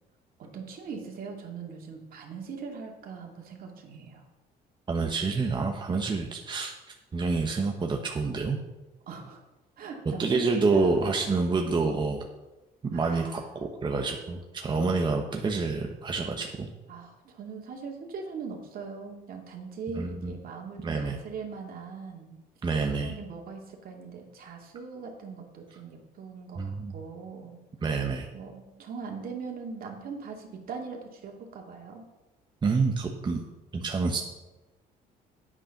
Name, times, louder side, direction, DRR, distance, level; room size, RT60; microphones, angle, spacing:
voice 1, 0.4-4.2 5.8-6.1 9.1-9.4 9.8-11.5 12.9-13.5 16.9-22.4 23.0-27.6 28.3-32.0, right 5 dB, 60° right, 1 dB, 2.6 m, -41 dB
voice 2, 4.9-6.7 7.1-8.6 10.2-12.3 12.9-16.7 20.0-20.3 20.8-21.2 22.6-23.1 26.6-26.9 27.8-28.3 32.6-33.4 33.7-34.2, right 4 dB, 25° right, 2 dB, 1.1 m, -27 dB
9.7 x 8.7 x 5.9 m, 1.1 s
cardioid pair, 110°, 17 cm